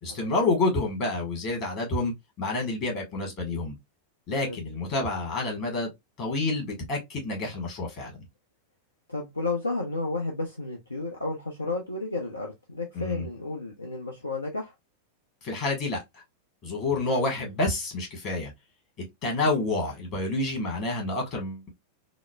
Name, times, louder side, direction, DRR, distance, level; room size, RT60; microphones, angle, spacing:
voice 1, 0.0-3.7 4.3-5.9 6.2-8.1 12.9-13.2 15.4-16.2 16.6-18.5 19.2-21.7, left 2 dB, 40° left, 1.5 m, -28 dB
voice 2, 9.1-14.7 17.4-17.5 19.4-19.5, left 2 dB, 80° left, 0.6 m, -32 dB
3.8 x 2.0 x 2.3 m
figure-of-eight pair, 90°, 0 cm